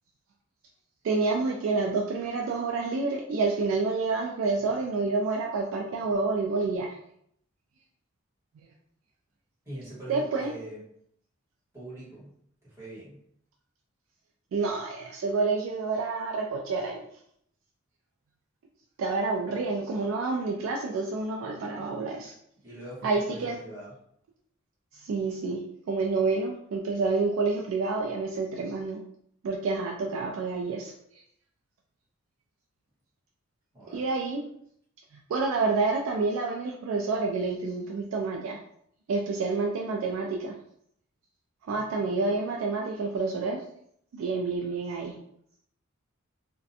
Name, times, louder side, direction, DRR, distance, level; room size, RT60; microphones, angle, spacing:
voice 1, 1.0-7.0 10.1-10.5 14.5-17.0 19.0-22.3 23.0-23.6 24.9-25.6 25.9-29.0 29.4-30.9 33.9-34.4 35.3-38.6 39.1-40.6 41.7-43.6 44.1-45.2, right 3 dB, 70° right, 0 dB, 0.3 m, -28 dB
voice 2, 9.6-10.8 11.7-12.3 12.6-13.2 22.6-24.0 33.7-34.0 41.7-41.8, right 1 dB, 15° right, -9 dB, 1.2 m, -42 dB
2.4 x 2.2 x 2.6 m, 0.69 s
head